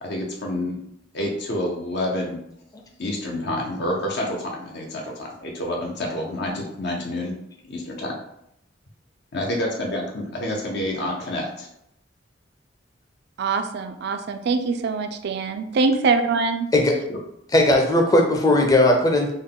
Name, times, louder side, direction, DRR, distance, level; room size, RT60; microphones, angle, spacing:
voice 1, 0.0-0.8 1.1-2.4 3.0-7.3 7.7-8.1 9.3-11.7 17.1-17.2, left 1 dB, 60° left, -1 dB, 0.6 m, -28 dB
voice 2, 13.4-16.7, right 4 dB, 60° right, 8 dB, 0.4 m, -23 dB
voice 3, 17.5-19.3, left 1 dB, 20° left, 2 dB, 0.6 m, -17 dB
3.7 x 2.2 x 3.7 m, 0.76 s
head